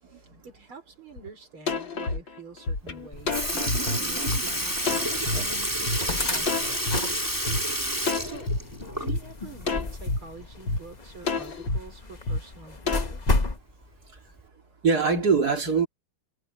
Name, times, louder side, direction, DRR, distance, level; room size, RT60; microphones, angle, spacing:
voice 1, 0.1-6.8 8.2-8.5 9.0-13.2, right 3 dB, 80° right, 6.0 m, -46 dB
sound 1, 1.2-1.3 1.7-5.4 5.9-6.0 6.5-7.6 8.1-8.6 9.1-9.2 9.7-10.2 10.7-10.8 11.3-11.8 12.3-12.4 12.9-13.4, left 3 dB, 65° left, 3.9 m, -28 dB
Sink (filling or washing) / Liquid, 2.9-3.0 3.3-9.4 9.8-9.9 11.4-11.5 12.4-12.5 13.3-13.6 14.4-14.5, right 1 dB, 10° right, 3.7 m, -29 dB
sound 2, 3.1-13.6, left 3 dB, 25° left, 1.1 m, -34 dB
voice 2, 14.8-15.9, right 5 dB, 45° right, 3.0 m, -23 dB
omnidirectional pair, 2.3 m